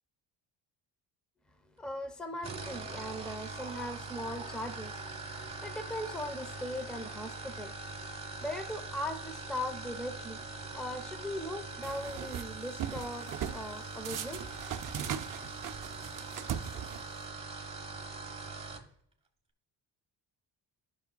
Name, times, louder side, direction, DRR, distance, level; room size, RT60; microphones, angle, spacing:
voice 1, 1.8-5.0 5.4-7.7 8.4-10.4 10.7-14.6 15.0-15.1, left 1 dB, ahead, 8 dB, 0.7 m, -39 dB
sound 1, 2.3-18.9, right 3 dB, 15° right, 1.1 m, -42 dB
sound 2, 11.8-12.4 12.8-13.6 14.0-17.2, right 9 dB, 45° right, 0.6 m, -39 dB
13.0 x 6.1 x 2.2 m, 0.70 s
cardioid pair, 115°, 45 cm